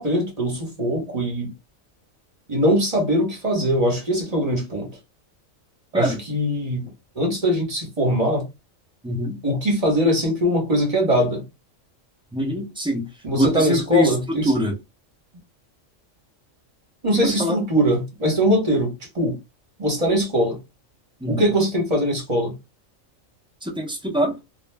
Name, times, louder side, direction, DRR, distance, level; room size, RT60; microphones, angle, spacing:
voice 1, 0.0-1.5 2.5-4.9 5.9-6.8 7.1-8.5 9.4-11.4 13.2-14.5 17.0-19.3 19.8-20.6 21.3-22.5, equal, 35° right, 1.0 m, -21 dB
voice 2, 9.0-9.4 12.3-13.1 13.4-14.7 17.2-17.6 21.2-21.4 23.6-24.4, equal, 10° right, 0.3 m, -24 dB
2.4 x 2.1 x 3.2 m
omnidirectional pair, 1.3 m